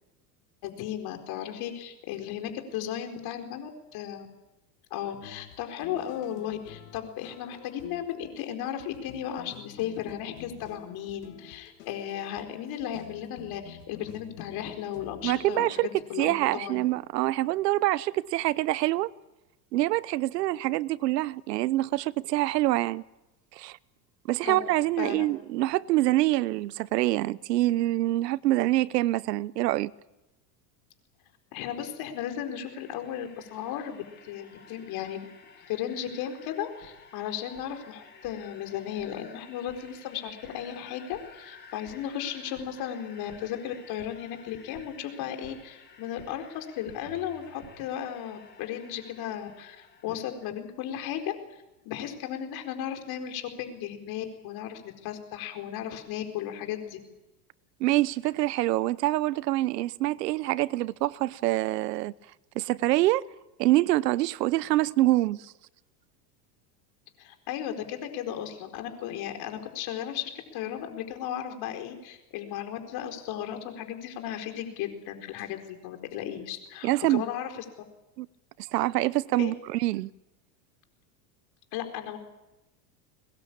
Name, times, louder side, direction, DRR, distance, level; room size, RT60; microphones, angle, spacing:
voice 1, 0.6-4.3 4.9-16.8 24.4-24.6 25.0-25.3 31.5-35.3 35.6-51.4 51.8-57.0 67.2-77.6 79.4-79.5 81.7-82.2, left 10 dB, 50° left, 4.5 m, -35 dB
sound 1, 5.1-15.7, left 10 dB, 90° left, 3.1 m, -50 dB
voice 2, 15.2-15.9 16.2-19.1 19.7-23.0 23.5-23.8 24.3-29.9 57.8-62.1 62.5-63.2 63.6-65.5 76.8-77.2 78.2-78.3 78.7-80.1, right 17 dB, 90° right, 0.9 m, -25 dB
sound 2, 32.1-50.6, left 5 dB, 20° left, 4.8 m, -54 dB
sound 3, 36.8-36.9 37.5-37.7 38.2-38.4 39.0-39.1 39.7-39.8 40.4-40.5 41.1-41.2 41.9-42.0 42.5-42.7 43.3-43.4 44.0-44.1 44.7-44.9 45.4-45.5 46.2-46.3 46.9-47.7, right 10 dB, 55° right, 4.3 m, -51 dB
23.0 x 20.5 x 8.7 m
supercardioid pair, 135°, 47 cm